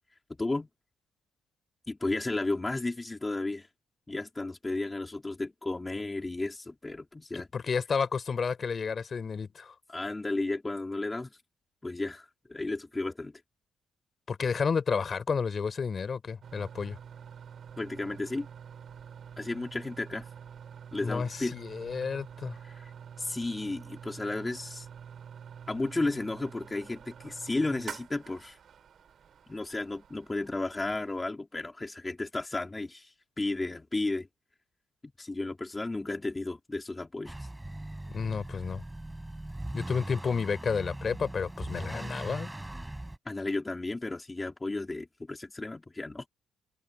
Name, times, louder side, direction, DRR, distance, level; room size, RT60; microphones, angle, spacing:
voice 1, 1.9-3.7 4.1-7.5 9.9-11.3 11.8-13.4 17.8-18.5 19.4-20.3 20.9-21.6 22.6-22.9 23.2-24.9 25.7-28.6 29.5-34.3 35.0-37.5 43.3-46.3, left 2 dB, 20° left, 3.6 m, -33 dB
voice 2, 7.3-9.7 14.3-17.0 21.0-22.6 38.1-38.8 39.7-42.5, left 5 dB, 40° left, 4.3 m, -31 dB
sound 1, 16.4-31.3, right 8 dB, 55° right, 7.6 m, -47 dB
Motor vehicle (road) / Accelerating revving vroom, 37.2-43.2, right 1 dB, 10° right, 4.3 m, -40 dB
cardioid pair, 90°, 0 cm